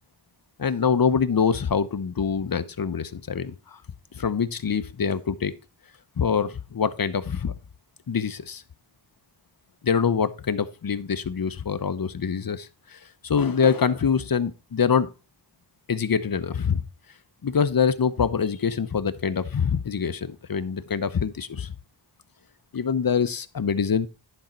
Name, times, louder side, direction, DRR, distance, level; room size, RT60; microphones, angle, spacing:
voice 1, 0.6-3.8 4.1-5.5 6.2-7.5 8.1-8.6 9.8-15.1 15.9-16.8 17.4-21.7 22.7-24.1, left 6 dB, 45° left, 0.9 m, -25 dB
10.5 x 5.2 x 4.4 m
cardioid pair, 60°, 50 cm